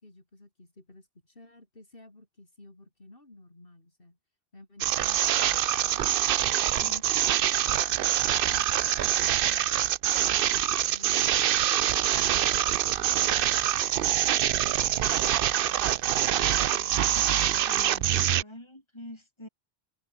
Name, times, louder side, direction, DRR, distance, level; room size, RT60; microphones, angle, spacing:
voice 1, 0.0-4.2 4.5-6.1 6.8-12.6 13.2-16.3 16.7-17.2, left 2 dB, 60° left, 4.6 m, -53 dB
sound 1, 4.8-18.4, right 11 dB, 65° right, 0.7 m, -25 dB
voice 2, 17.1-19.5, left 1 dB, 25° left, 6.1 m, -46 dB
omnidirectional pair, 1.1 m